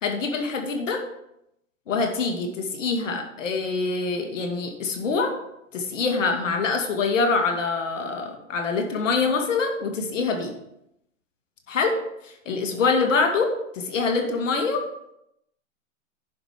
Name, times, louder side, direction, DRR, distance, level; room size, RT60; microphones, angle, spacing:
voice 1, 0.0-1.0 1.9-5.3 5.7-10.5 11.7-11.9 12.2-14.8, left 4 dB, 70° left, 4 dB, 2.3 m, -25 dB
11.0 x 5.1 x 5.2 m, 0.80 s
hypercardioid pair, 135°, 39 cm